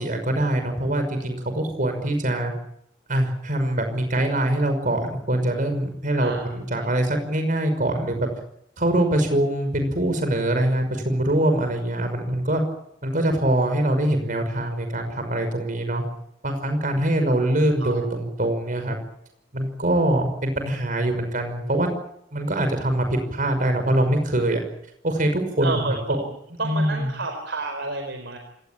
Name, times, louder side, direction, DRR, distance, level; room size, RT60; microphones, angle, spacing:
voice 1, 0.0-2.5 3.1-8.3 8.8-12.6 13.0-16.0 16.4-19.0 19.5-21.9 22.3-24.6 25.0-26.0 26.6-27.1, right 1 dB, 45° right, 6 dB, 5.7 m, -23 dB
voice 2, 6.2-6.5 6.8-6.9 17.0-17.2 17.8-17.9 25.6-26.3 26.6-28.4, right 2 dB, 65° right, 4 dB, 4.5 m, -30 dB
27.0 x 19.0 x 8.8 m, 0.76 s
head